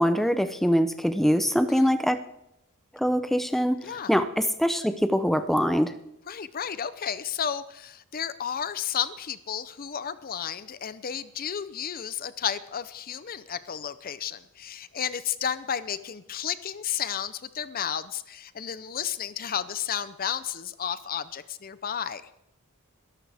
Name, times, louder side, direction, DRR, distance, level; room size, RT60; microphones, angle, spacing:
voice 1, 0.0-2.2 2.9-5.9, equal, ahead, 10 dB, 0.6 m, -23 dB
voice 2, 6.3-22.4, left 8 dB, 40° left, 14 dB, 0.6 m, -32 dB
21.5 x 12.5 x 3.5 m, 0.83 s
head